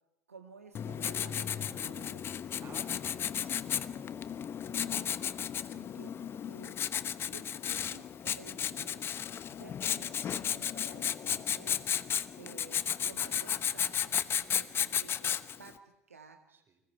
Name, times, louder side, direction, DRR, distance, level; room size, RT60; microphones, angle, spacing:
voice 1, 0.3-2.3 4.7-5.2 5.7-6.8 7.0-9.0 9.5-11.8 12.4-16.4, right 5 dB, 80° right, 5 dB, 1.7 m, -54 dB
Writing, 0.7-15.7, left 9 dB, 30° left, 1.0 m, -34 dB
voice 2, 2.6-3.9 5.6-5.9 14.5-14.7 16.5-16.8, right 5 dB, 30° right, 6 dB, 4.9 m, -55 dB
30.0 x 25.5 x 4.8 m, 0.92 s
figure-of-eight pair, 75°, 8 cm